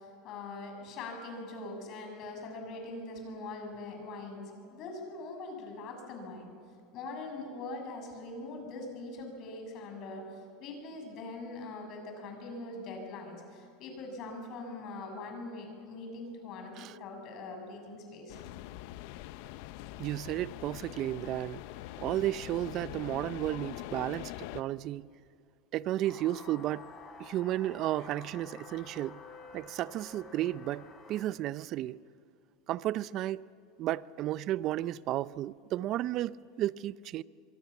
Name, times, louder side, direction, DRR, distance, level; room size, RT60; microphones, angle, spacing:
voice 1, 0.0-6.5 6.9-18.4, left 2 dB, 50° left, 7.1 m, -42 dB
sound 1, 18.3-24.6, left 16 dB, 70° left, 0.7 m, -43 dB
voice 2, 20.0-21.6 22.0-25.1 25.7-26.9 27.2-29.2 29.5-32.0 32.7-33.4 33.8-37.2, right 14 dB, 50° right, 0.6 m, -33 dB
sound 2, 26.0-31.2, left 4 dB, 35° left, 4.7 m, -50 dB
25.0 x 23.5 x 7.2 m
supercardioid pair, 110°, 0 cm